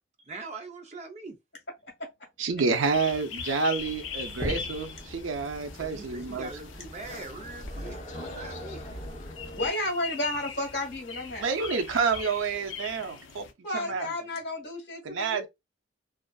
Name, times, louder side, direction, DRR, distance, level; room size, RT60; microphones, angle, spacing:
voice 1, 0.3-1.4 5.8-8.8 13.9-14.1, right 3 dB, 35° right, 0.5 m, -42 dB
voice 2, 2.4-6.5 11.4-13.5 13.7-14.1 15.0-15.5, right 4 dB, 90° right, 0.5 m, -28 dB
sound 1, 2.6-13.5, left 7 dB, 80° left, 0.5 m, -42 dB
sound 2, 3.8-9.7, equal, 30° left, 0.7 m, -40 dB
voice 3, 9.5-11.5 13.6-15.5, left 1 dB, 60° left, 1.3 m, -32 dB
2.5 x 2.4 x 2.2 m
head